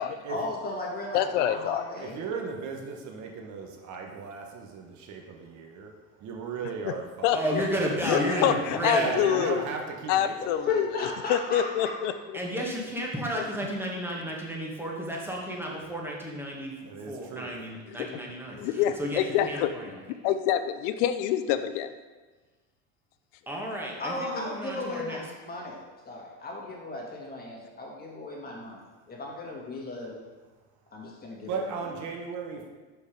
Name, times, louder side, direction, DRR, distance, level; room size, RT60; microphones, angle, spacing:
voice 1, 0.3-2.2 8.4-9.6 10.4-11.9 24.0-30.2 30.9-31.9, left 2 dB, 25° left, -2 dB, 1.8 m, -37 dB
voice 2, 1.1-1.8 6.9-7.0 7.2-7.6 8.0-9.6 10.1-12.1 13.3-13.4 18.0-18.1 18.6-19.7 20.2-21.9, left 10 dB, 85° left, 11 dB, 0.6 m, -26 dB
voice 3, 2.0-5.9 6.2-7.3 7.7-10.3 16.8-17.5 18.8-19.0 31.4-32.7, right 5 dB, 55° right, 2 dB, 1.2 m, -35 dB
voice 4, 7.3-9.1 12.3-20.0 23.5-25.2, equal, 5° right, -2 dB, 1.4 m, -33 dB
5.4 x 4.6 x 5.1 m, 1.3 s
supercardioid pair, 105°, 35 cm